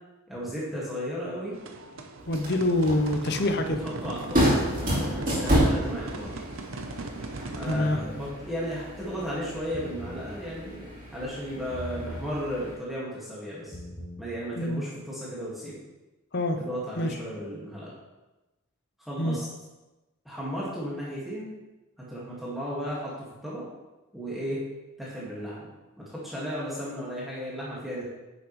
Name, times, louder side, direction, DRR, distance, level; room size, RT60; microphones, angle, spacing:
voice 1, 0.3-1.6 3.8-4.6 5.1-6.4 7.5-13.8 14.2-15.8 16.6-17.9 19.0-19.5 20.3-21.5 22.0-23.6 24.1-24.6 25.0-25.7 26.0-28.0, equal, ahead, -8 dB, 1.8 m, -35 dB
sound 1, 1.5-7.8, right 2 dB, 65° right, 0.8 m, -39 dB
sound 2, 2.2-12.8, equal, 35° right, 3.0 m, -30 dB
voice 2, 2.3-3.8 7.6-8.0 14.6-14.8 16.3-16.6 17.0-17.1 19.2-19.4, left 1 dB, 50° left, 6 dB, 0.8 m, -25 dB
sound 3, 7.7-8.2 9.6-10.2 11.7-12.3 13.6-14.2, equal, 25° left, 1.9 m, -39 dB
10.5 x 6.8 x 3.1 m, 1.1 s
head